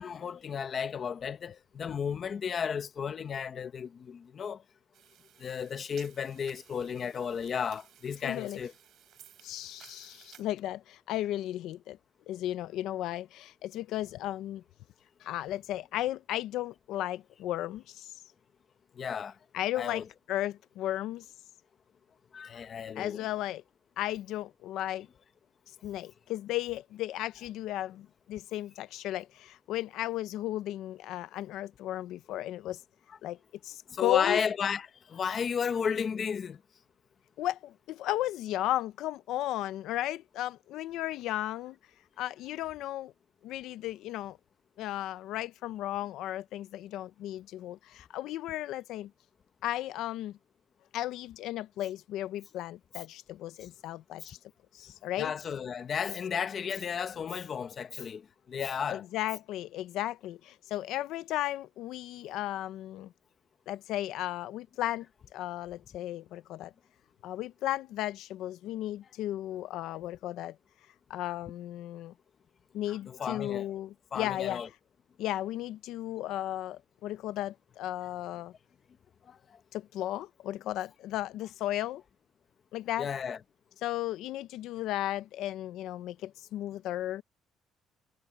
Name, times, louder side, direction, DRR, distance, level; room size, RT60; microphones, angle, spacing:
voice 1, 0.0-4.6 5.4-8.7 19.0-19.3 19.8-20.0 22.3-23.3 33.9-36.6 54.2-54.3 55.2-59.0 72.9-73.7 74.1-74.7 79.3-79.4 83.0-83.4, left 7 dB, 30° left, 0.8 m, -33 dB
sound 1, 4.9-10.4, right 11 dB, 50° right, 4.9 m, -57 dB
voice 2, 8.2-8.6 9.4-12.0 12.3-14.6 15.2-18.2 19.5-21.3 23.0-23.6 24.0-25.1 25.8-32.8 33.2-33.4 33.6-34.4 37.4-41.8 42.2-43.1 43.4-44.4 44.8-49.1 49.6-50.4 50.9-54.4 54.7-55.3 58.9-63.1 63.7-65.1 65.3-66.7 67.2-70.6 71.1-72.1 72.7-74.6 75.2-78.5 79.7-82.0 82.7-83.1 83.8-87.2, left 14 dB, 70° left, 0.5 m, -35 dB
cardioid pair, 180°, 0 cm